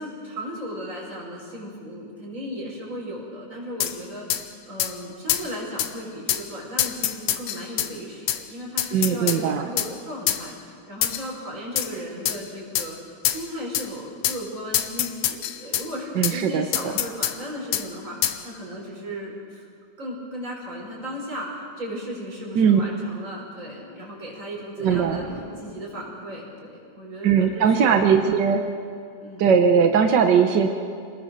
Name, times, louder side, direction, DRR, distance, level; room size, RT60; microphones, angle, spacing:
voice 1, 0.0-13.0 13.2-18.2 18.4-19.6 20.0-25.2 25.6-28.4 29.2-29.4, equal, 25° right, -2 dB, 5.5 m, -36 dB
sound 1, 3.8-3.9 4.3-4.4 4.8-4.9 5.3-5.5 5.8-5.9 6.3-6.4 6.8-7.9 8.3-8.4 8.8-9.4 9.8-9.9 10.3-10.4 11.0-11.3 11.8-11.9 12.3-12.4 12.7-12.9 13.2-13.4 13.7-13.9 14.2-14.4 14.7-15.9 16.2-16.4 16.7-17.4 17.7-17.9 18.2-18.4, left 12 dB, 75° left, 2.2 m, -25 dB
voice 2, 8.9-9.7 16.2-16.6 22.5-22.8 24.8-25.2 27.2-28.6 29.4-30.7, right 7 dB, 65° right, 5 dB, 1.1 m, -19 dB
Boom, 24.8-26.7, left 1 dB, 15° left, 1.5 m, -40 dB
27.0 x 19.5 x 6.7 m, 2.3 s
omnidirectional pair, 3.3 m